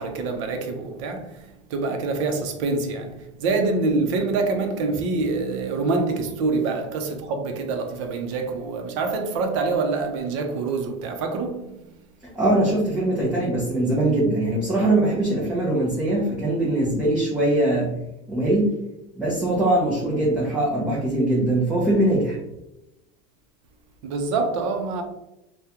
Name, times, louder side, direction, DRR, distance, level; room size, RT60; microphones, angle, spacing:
voice 1, 0.0-11.9 24.0-25.0, right 3 dB, 65° right, 0.6 m, -26 dB
voice 2, 12.3-18.0 18.3-18.8 19.2-22.4, right 1 dB, 5° right, 0.5 m, -22 dB
3.5 x 2.2 x 2.8 m
supercardioid pair, 170°, 17 cm